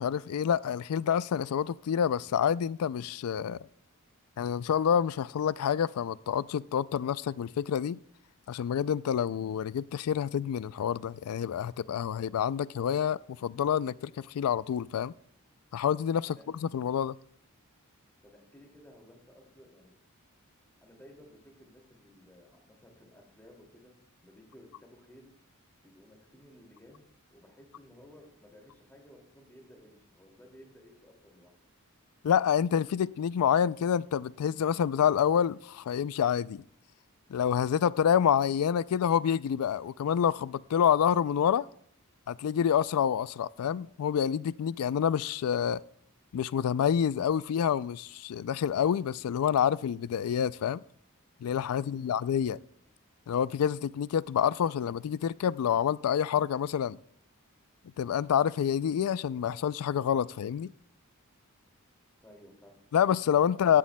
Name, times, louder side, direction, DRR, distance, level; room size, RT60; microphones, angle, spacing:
voice 1, 0.0-3.6 4.4-8.0 8.5-15.1 15.7-16.4 16.6-17.2 32.2-36.6 37.3-41.7 42.3-45.8 46.3-50.8 51.4-52.6 53.3-57.0 58.0-60.7 62.9-63.8, left 8 dB, 80° left, 0.3 m, -27 dB
voice 2, 18.2-20.0 20.8-23.9 24.2-25.3 25.8-31.6 51.7-52.2 62.2-62.8 63.5-63.8, equal, 10° left, 2.4 m, -56 dB
15.5 x 11.5 x 2.2 m
head